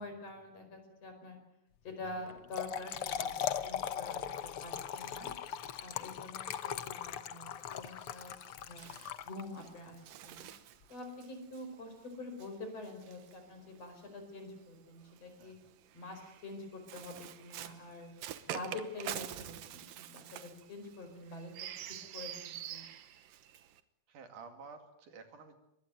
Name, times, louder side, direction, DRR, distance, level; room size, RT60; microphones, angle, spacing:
voice 1, 0.0-1.4 1.8-5.3 5.8-8.9 9.2-10.5 10.9-15.6 15.9-18.1 18.5-21.5 22.1-22.8, left 2 dB, 45° left, 6 dB, 5.9 m, -46 dB
Trickle dribble / Fill (with liquid), 2.3-9.8, left 9 dB, 65° left, 1.4 m, -39 dB
Bird, 7.5-14.1 15.0-23.8, right 11 dB, 85° right, 2.8 m, -47 dB
voice 2, 15.4-15.7 21.8-22.1 24.1-25.6, right 5 dB, 70° right, 7 dB, 3.9 m, -52 dB
23.5 x 21.0 x 9.3 m, 0.82 s
omnidirectional pair, 3.9 m